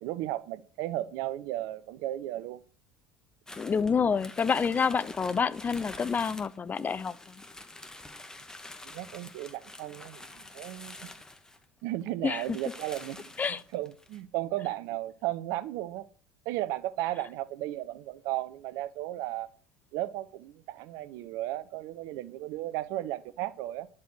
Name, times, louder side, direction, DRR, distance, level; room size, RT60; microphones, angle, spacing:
voice 1, 0.0-2.6 8.8-11.1 11.8-13.2 13.7-16.1 16.4-19.5 19.9-23.9, right 15 dB, 60° right, 0.8 m, -35 dB
voice 2, 3.5-7.4 12.2-12.4 13.4-13.6, left 6 dB, 25° left, 0.8 m, -28 dB
sound 1, 3.5-11.7 12.0-12.1 12.3-14.2, left 2 dB, 10° left, 2.0 m, -47 dB
11.5 x 7.5 x 6.1 m
figure-of-eight pair, 65°, 6 cm